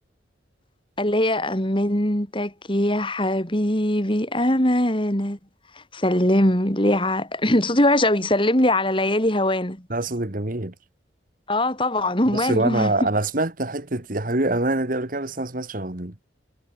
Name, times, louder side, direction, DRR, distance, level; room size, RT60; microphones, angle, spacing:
voice 1, 1.0-5.4 5.9-9.8 11.5-12.9, left 1 dB, 25° left, 4.1 m, -21 dB
voice 2, 9.9-10.7 12.3-16.1, right 2 dB, 45° right, 1.7 m, -25 dB
head